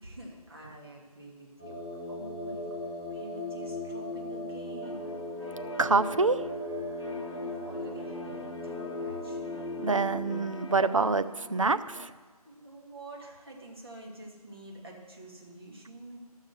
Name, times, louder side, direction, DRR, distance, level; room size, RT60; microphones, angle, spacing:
voice 1, 0.0-1.7 2.1-5.1 7.1-9.4 12.4-16.2, right 1 dB, 40° right, -1 dB, 2.1 m, -47 dB
sound 1, 1.6-10.3, left 2 dB, 10° left, 3.7 m, -37 dB
sound 2, 4.8-12.1, left 1 dB, 50° left, 0.8 m, -46 dB
voice 2, 5.8-6.4 9.8-12.1, right 4 dB, 55° right, 12 dB, 0.5 m, -26 dB
11.0 x 6.5 x 6.8 m, 1.5 s
figure-of-eight pair, 165°, 20 cm